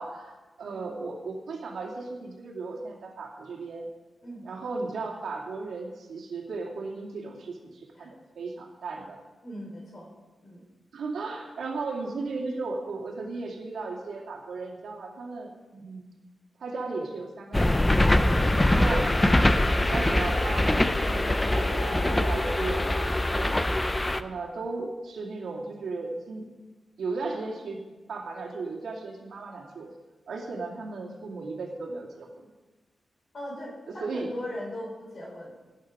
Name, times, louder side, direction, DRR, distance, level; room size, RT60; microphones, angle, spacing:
voice 1, 0.0-3.9 4.4-9.2 10.9-16.1 16.6-18.0 18.6-19.1 19.9-22.8 23.3-26.5 27.0-27.8 28.1-29.9 30.3-32.5 33.9-34.3, right 3 dB, 80° right, -1 dB, 2.5 m, -36 dB
voice 2, 9.4-10.1 10.4-10.6 33.3-35.5, left 1 dB, 40° left, -2 dB, 4.8 m, -39 dB
sound 1, 17.5-24.2, left 1 dB, 10° left, 0.5 m, -23 dB
sound 2, 18.0-23.1, left 1 dB, 90° left, 3.1 m, -39 dB
17.5 x 9.2 x 5.1 m, 1.2 s
wide cardioid pair, 175°, 0 cm